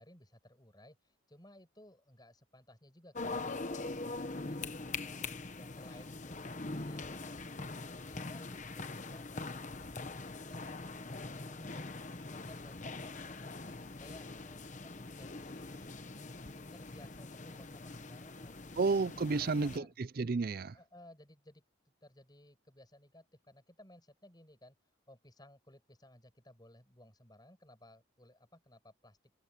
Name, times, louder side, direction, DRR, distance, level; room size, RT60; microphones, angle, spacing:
voice 1, 0.0-5.3 5.5-11.8 12.3-16.2 16.6-18.9 19.3-19.9 20.7-21.6 22.0-29.2, left 1 dB, 20° left, 7.6 m, -59 dB
sound 1, 3.1-19.8, left 3 dB, 35° left, 1.0 m, -43 dB
voice 2, 18.8-20.8, right 4 dB, 45° right, 0.5 m, -32 dB
head